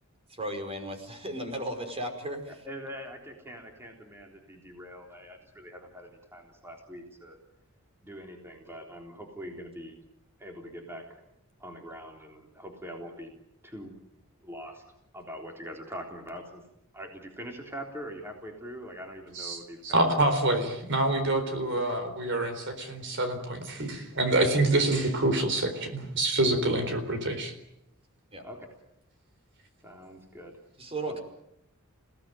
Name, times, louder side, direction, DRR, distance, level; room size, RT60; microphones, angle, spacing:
voice 1, 0.3-2.5 28.3-28.5 30.8-31.2, right 1 dB, 25° right, 6 dB, 5.1 m, -35 dB
voice 2, 2.6-7.4 8.0-10.0 10.4-11.2 11.6-13.3 13.6-13.9 14.4-14.8 15.1-16.6 16.9-20.0 28.4-28.7 29.8-30.5 31.0-31.2, equal, 10° right, 2 dB, 3.7 m, -43 dB
voice 3, 19.3-27.5, right 2 dB, 60° right, 7 dB, 4.2 m, -26 dB
29.0 x 18.0 x 9.3 m, 0.79 s
head